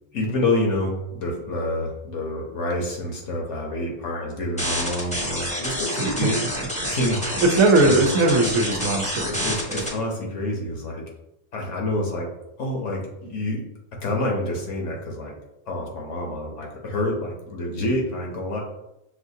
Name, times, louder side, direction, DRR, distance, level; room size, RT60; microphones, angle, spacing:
voice 1, 0.1-6.4 6.8-7.4 7.8-8.0 9.3-11.1 11.5-12.3 12.6-13.6 13.9-15.4 15.7-18.6, left 1 dB, 60° left, 0 dB, 1.1 m, -27 dB
sound 1, 4.6-9.9, equal, 5° left, 0.7 m, -28 dB
voice 2, 7.6-9.9, right 2 dB, 75° right, 3 dB, 1.1 m, -20 dB
6.3 x 2.5 x 2.7 m, 0.85 s
omnidirectional pair, 1.5 m